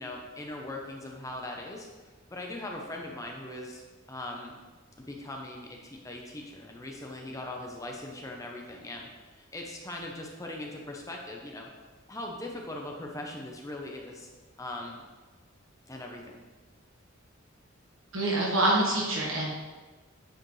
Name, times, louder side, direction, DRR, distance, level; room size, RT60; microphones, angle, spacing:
voice 1, 0.0-1.9 2.3-3.8 4.1-4.6 5.0-11.7 12.1-14.3 14.6-15.0 15.9-16.4, left 1 dB, 15° left, 0 dB, 0.7 m, -40 dB
voice 2, 18.1-19.5, right 1 dB, 70° right, -3 dB, 1.4 m, -26 dB
9.0 x 4.9 x 3.1 m, 1.3 s
head